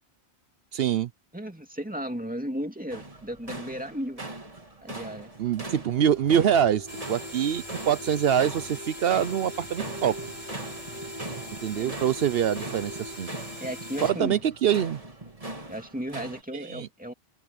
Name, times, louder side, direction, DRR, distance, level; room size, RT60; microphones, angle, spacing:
voice 1, 0.7-1.1 5.4-10.2 11.6-13.3 14.0-15.0 16.5-16.9, right 9 dB, 70° right, 0.9 m, -25 dB
voice 2, 1.3-4.3 4.8-5.3 11.8-12.0 13.6-14.4 15.7-17.1, equal, 10° right, 2.4 m, -35 dB
sound 1, 2.9-16.4, right 2 dB, 35° right, 2.9 m, -41 dB
sound 2, 6.0-13.2, right 1 dB, 40° left, 4.3 m, -44 dB
sound 3, 6.9-14.1, left 1 dB, 85° right, 3.6 m, -42 dB
omnidirectional pair, 1.1 m